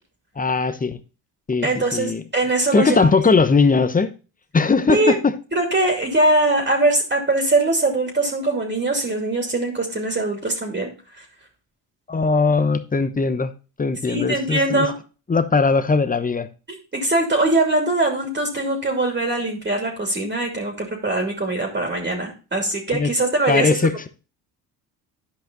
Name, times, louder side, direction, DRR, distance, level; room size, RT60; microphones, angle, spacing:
voice 1, 0.4-1.0 1.5-2.2 2.7-4.1 4.5-5.3 12.1-13.5 13.8-14.9 15.3-16.5 22.9-23.1 23.5-24.1, left 4 dB, 20° left, 12 dB, 0.9 m, -19 dB
voice 2, 1.6-3.1 4.9-5.2 5.5-11.2 14.1-14.9 16.7-23.9, right 2 dB, 25° right, 1 dB, 2.7 m, -22 dB
10.5 x 5.2 x 3.8 m, 0.34 s
supercardioid pair, 70°, 43 cm